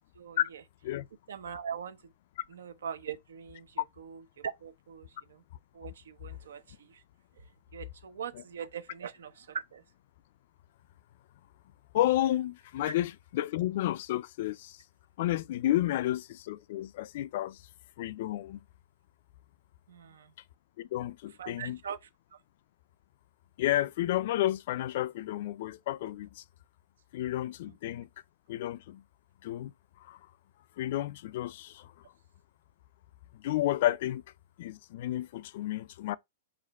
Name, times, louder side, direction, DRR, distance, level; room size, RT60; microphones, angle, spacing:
voice 1, 0.1-0.6 1.3-2.1 2.5-5.4 5.7-7.0 7.4-7.5 7.7-9.8 12.9-13.0 19.9-20.3 21.4-22.4 27.6-27.8, right 7 dB, 90° right, 0.7 m, -42 dB
voice 2, 11.9-14.8 15.2-17.6 18.0-18.6 20.8-21.8 23.6-26.4 27.1-28.1 28.5-29.0 29.4-29.7 30.1-30.2 30.8-31.9 33.3-34.2 34.6-36.2, left 14 dB, 50° left, 0.3 m, -31 dB
4.9 x 2.5 x 4.1 m
hypercardioid pair, 160°, 0 cm